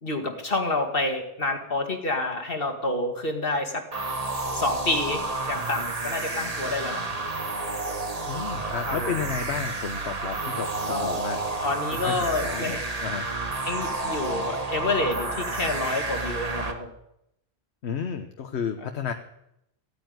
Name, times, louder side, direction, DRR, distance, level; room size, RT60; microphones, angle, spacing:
voice 1, 0.0-3.8 4.5-7.0 8.9-9.1 10.9-11.2 11.6-12.8 13.7-16.9, left 2 dB, 60° left, 5 dB, 2.1 m, -28 dB
sound 1, 3.9-16.7, right 3 dB, 35° right, 1.4 m, -30 dB
voice 2, 8.2-11.4 11.9-13.3 17.8-19.1, left 7 dB, 85° left, 6 dB, 1.2 m, -32 dB
15.0 x 9.2 x 9.3 m, 0.82 s
omnidirectional pair, 1.1 m